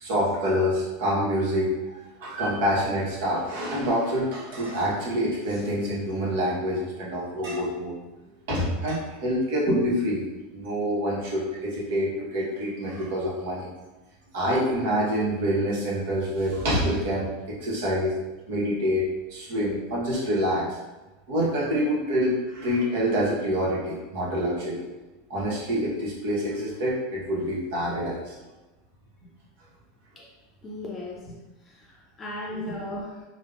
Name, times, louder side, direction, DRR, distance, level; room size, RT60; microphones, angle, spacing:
voice 1, 0.0-8.0 8.5-10.2 10.5-13.7 14.3-18.1 18.5-20.8 21.3-24.9 25.3-28.4 32.6-32.7, equal, 75° right, -5 dB, 0.9 m, -26 dB
voice 2, 30.6-31.3 31.7-33.2, left 1 dB, 25° left, -3 dB, 0.4 m, -36 dB
3.3 x 2.0 x 2.3 m, 1.1 s
hypercardioid pair, 110°, 0 cm